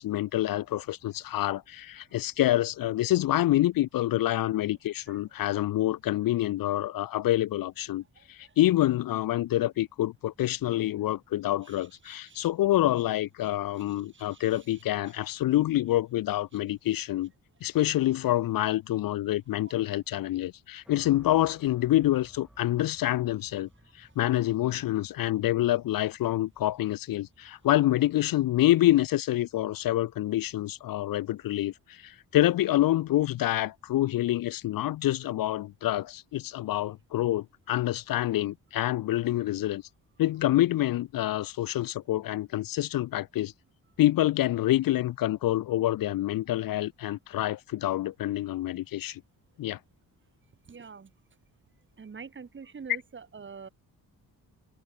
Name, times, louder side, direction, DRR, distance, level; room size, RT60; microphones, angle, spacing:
voice 1, 0.0-17.3 17.6-23.7 23.9-39.8 40.2-43.5 44.0-49.2 49.6-49.8, left 14 dB, 65° left, 0.5 m, -27 dB
voice 2, 4.2-4.5 5.1-5.2 6.8-7.1 8.2-8.6 11.6-12.5 14.1-14.8 50.6-51.1 52.0-53.7, right 5 dB, 30° right, 1.5 m, -47 dB
sound 1, 20.8-29.1, equal, ahead, 2.0 m, -59 dB
cardioid pair, 125°, 37 cm